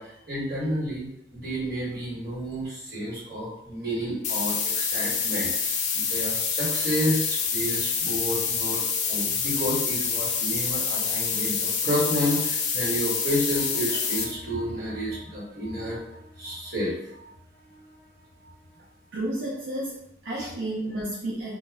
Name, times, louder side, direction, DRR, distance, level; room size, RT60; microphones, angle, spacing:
voice 1, 0.0-8.8 9.1-17.3 17.7-17.8 20.4-20.5, equal, 55° right, -7 dB, 1.3 m, -30 dB
sound 1, 4.2-14.2, left 6 dB, 40° left, 0.4 m, -27 dB
voice 2, 19.1-21.6, right 1 dB, 90° right, -6 dB, 0.6 m, -31 dB
2.1 x 2.1 x 3.3 m, 0.81 s
head